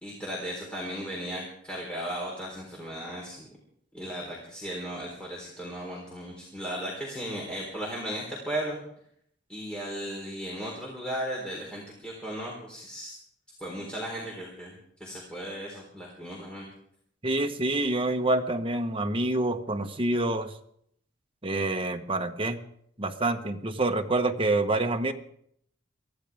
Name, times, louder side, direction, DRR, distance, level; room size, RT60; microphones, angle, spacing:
voice 1, 0.0-3.5 3.9-8.8 9.5-13.1 13.6-14.7 15.0-16.7, equal, 5° left, -3 dB, 3.9 m, -36 dB
voice 2, 17.2-20.5 21.4-22.6 23.0-25.1, right 2 dB, 30° right, 4 dB, 1.2 m, -27 dB
24.5 x 15.5 x 3.6 m, 0.68 s
head